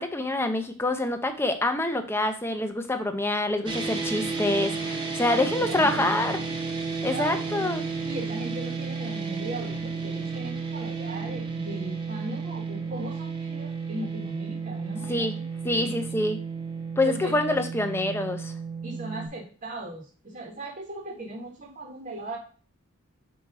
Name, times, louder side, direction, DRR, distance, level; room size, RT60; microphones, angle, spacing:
voice 1, 0.0-6.4 7.0-7.8 15.1-15.3 15.6-16.4 17.0-18.5, left 2 dB, 10° left, 6 dB, 0.7 m, -26 dB
sound 1, 3.7-19.3, right 4 dB, 20° right, 1.2 m, -32 dB
voice 2, 5.3-6.1 7.0-15.3 15.6-16.0 17.0-17.6 18.8-22.4, right 1 dB, 40° right, -2 dB, 1.4 m, -38 dB
7.2 x 2.9 x 4.7 m, 0.41 s
head